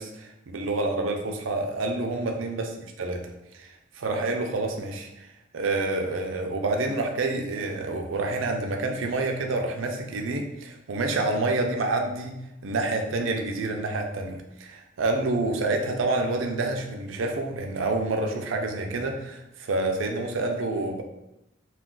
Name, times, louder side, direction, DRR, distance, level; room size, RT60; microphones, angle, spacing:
voice 1, 0.0-3.3 3.5-5.3 5.5-12.4 12.6-21.0, right 2 dB, 90° right, 3 dB, 0.5 m, -28 dB
2.4 x 2.3 x 3.6 m, 0.86 s
head